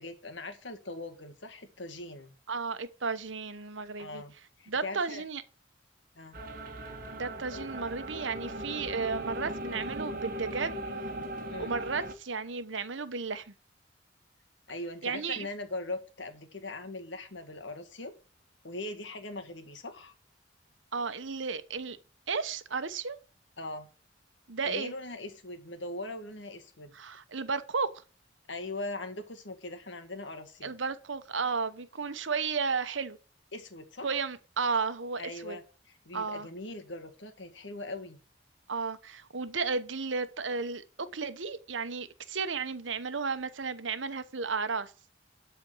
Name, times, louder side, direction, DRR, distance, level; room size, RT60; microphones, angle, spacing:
voice 1, 0.0-2.3 4.0-5.2 6.1-6.4 7.5-7.7 11.5-11.8 14.7-18.1 18.6-20.1 23.6-23.9 24.6-26.9 28.5-30.7 33.5-34.2 35.2-35.6 35.9-38.2, left 2 dB, 70° left, 1.7 m, -40 dB
voice 2, 2.5-4.2 4.7-5.4 7.1-11.1 11.6-13.5 15.0-15.5 20.9-22.0 22.3-23.2 24.5-24.9 26.9-27.9 30.6-33.2 34.0-35.6 36.1-36.5 38.7-44.9, right 5 dB, 75° right, 1.0 m, -33 dB
sound 1, 6.3-12.1, right 1 dB, 45° right, 1.5 m, -38 dB
12.0 x 4.3 x 7.8 m
head